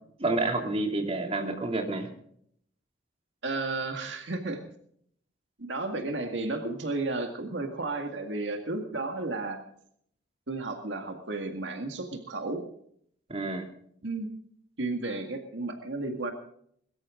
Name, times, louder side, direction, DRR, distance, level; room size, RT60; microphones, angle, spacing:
voice 1, 0.2-2.1 13.3-13.6, right 2 dB, 35° right, 3 dB, 2.8 m, -29 dB
voice 2, 3.4-4.6 5.6-9.6 10.5-12.7 14.0-14.3 14.8-16.3, right 2 dB, 75° right, 5 dB, 2.0 m, -33 dB
22.0 x 13.5 x 3.8 m, 0.66 s
head